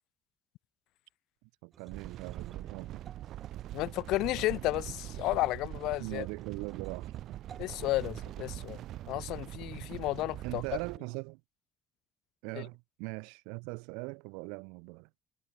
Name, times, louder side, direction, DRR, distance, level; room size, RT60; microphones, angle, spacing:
voice 1, 1.4-3.0 6.0-7.2 10.4-11.4 12.4-15.1, right 34 dB, 90° right, 0.9 m, -41 dB
sound 1, 1.7-9.6, right 7 dB, 40° right, 1.5 m, -58 dB
sound 2, 1.9-11.0, right 13 dB, 65° right, 1.5 m, -42 dB
voice 2, 3.7-6.2 7.6-8.8 9.1-10.6 12.6-12.7, left 18 dB, 75° left, 0.5 m, -32 dB
supercardioid pair, 100°, 0 cm